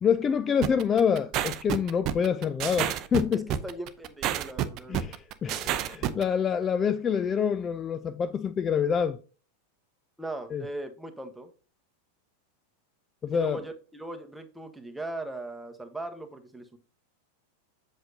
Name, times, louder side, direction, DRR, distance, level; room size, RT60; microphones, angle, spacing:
voice 1, 0.0-3.5 4.9-9.2 10.5-10.6 13.2-13.6, left 7 dB, 25° left, 0.4 m, -26 dB
sound 1, 0.6-6.2, right 11 dB, 35° right, 0.6 m, -29 dB
voice 2, 3.3-5.0 10.2-11.5 13.3-16.8, right 2 dB, 5° right, 1.1 m, -39 dB
7.9 x 6.4 x 2.7 m
figure-of-eight pair, 90°, 0 cm